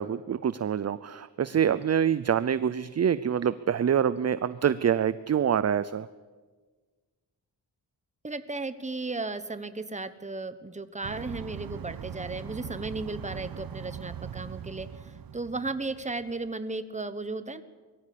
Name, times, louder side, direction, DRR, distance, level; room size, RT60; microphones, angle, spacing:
voice 1, 0.0-6.1, right 8 dB, 40° right, 16 dB, 0.6 m, -26 dB
voice 2, 8.2-17.6, right 3 dB, 15° right, 11 dB, 1.3 m, -35 dB
sound 1, 11.0-16.5, right 8 dB, 60° right, 0.8 m, -41 dB
22.5 x 15.0 x 8.6 m, 1.4 s
wide cardioid pair, 95°, 40 cm